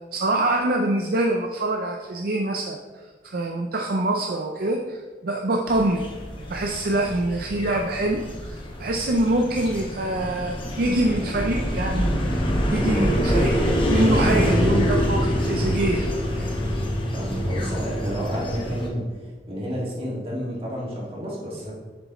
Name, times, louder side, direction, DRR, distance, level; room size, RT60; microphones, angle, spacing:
voice 1, 0.1-2.8 3.2-6.1 6.5-16.1 16.3-16.6, right 1 dB, 55° right, 2 dB, 0.5 m, -25 dB
sound 1, 5.7-18.9, equal, 30° left, 1.1 m, -25 dB
voice 2, 17.1-19.1 19.5-21.7, equal, 35° right, -5 dB, 2.2 m, -30 dB
7.6 x 6.9 x 3.1 m, 1.4 s
head